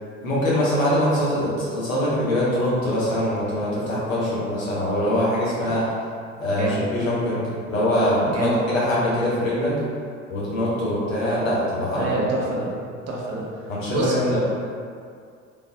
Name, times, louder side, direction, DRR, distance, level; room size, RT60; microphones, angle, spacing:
voice 1, 0.2-5.9 6.4-9.8 10.3-12.2 13.7-14.4, left 1 dB, 85° left, -8 dB, 0.9 m, -23 dB
voice 2, 6.4-6.9 8.3-8.6 11.9-12.7 13.1-13.6 13.9-14.3, right 2 dB, 40° right, -3 dB, 0.7 m, -27 dB
3.3 x 2.4 x 2.6 m, 2.2 s
figure-of-eight pair, 55°, 39 cm